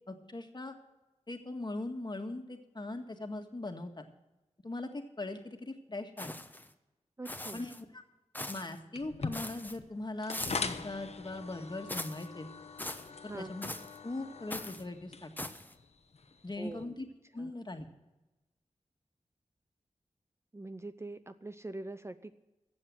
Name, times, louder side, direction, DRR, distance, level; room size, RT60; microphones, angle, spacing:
voice 1, 0.1-0.8 1.3-4.0 4.6-6.3 7.5-7.9 8.5-12.5 13.2-13.7 14.0-15.3 16.4-17.1 17.3-17.9, left 2 dB, 35° left, 5 dB, 1.8 m, -40 dB
sound 1, 6.2-6.7 7.2-7.8 8.3-8.8 9.3-9.8 10.3-10.8 11.9-12.3 12.8-13.1 13.6-14.0 14.5-14.8 15.4-15.7, left 1 dB, 15° left, 1.0 m, -41 dB
voice 2, 7.2-7.7 13.3-13.5 16.6-17.0 17.4-17.5 20.5-22.4, right 2 dB, 20° right, 11 dB, 0.6 m, -43 dB
sound 2, 8.9-16.8, left 4 dB, 60° left, 1.1 m, -43 dB
14.5 x 7.9 x 7.6 m, 1.1 s
cardioid pair, 55°, 12 cm